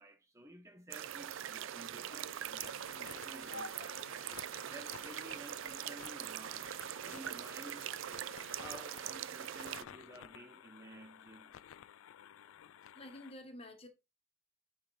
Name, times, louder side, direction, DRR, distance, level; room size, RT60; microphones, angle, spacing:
voice 1, 0.0-4.3 4.7-6.7 7.0-7.9 8.5-11.6, right 2 dB, 15° right, 0.5 m, -53 dB
sound 1, 0.9-9.8, right 10 dB, 65° right, 0.4 m, -43 dB
sound 2, 2.1-7.2, left 2 dB, 55° left, 1.0 m, -55 dB
sound 3, 2.6-13.3, left 9 dB, 80° left, 0.3 m, -54 dB
voice 2, 12.4-13.9, left 1 dB, 30° left, 1.2 m, -51 dB
8.9 x 3.9 x 3.2 m
head